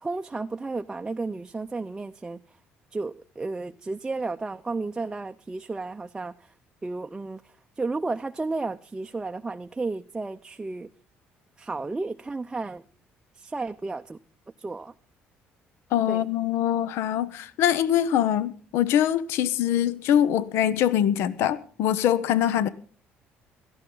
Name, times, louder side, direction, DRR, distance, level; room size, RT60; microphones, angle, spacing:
voice 1, 0.0-2.4 2.9-6.5 6.8-10.9 11.6-12.8 13.3-14.2 14.6-14.9 16.1-16.3, right 3 dB, 15° right, 0.5 m, -33 dB
voice 2, 15.9-22.7, left 10 dB, 75° left, 0.7 m, -23 dB
17.5 x 13.5 x 3.9 m
cardioid pair, 125°, 4 cm